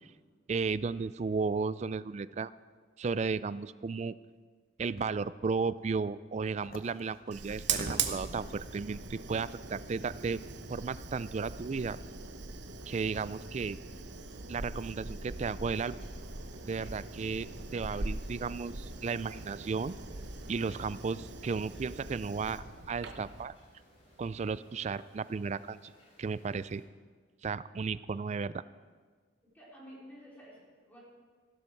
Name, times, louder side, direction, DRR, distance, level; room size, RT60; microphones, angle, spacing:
voice 1, 0.5-2.5 3.0-4.1 4.8-10.4 10.7-12.0 12.9-13.8 14.5-16.0 16.7-19.9 20.5-23.5 24.2-25.9 26.2-26.8 27.4-28.6, right 5 dB, 35° right, 16 dB, 0.3 m, -34 dB
sound 1, 5.0-5.2 5.8-5.9 6.6-8.5 9.4-9.7 10.9-11.0 12.3-12.4 13.1-13.5 14.8-15.0 16.7-16.8 17.8-18.2 18.9-19.1, left 2 dB, 50° left, 1.0 m, -55 dB
Fire, 7.3-23.4, right 4 dB, 65° right, 1.1 m, -40 dB
sound 2, 15.7-26.8, equal, 35° left, 4.8 m, -60 dB
voice 2, 29.5-31.0, equal, 10° left, -7 dB, 4.3 m, -52 dB
15.5 x 12.5 x 4.6 m, 1.5 s
head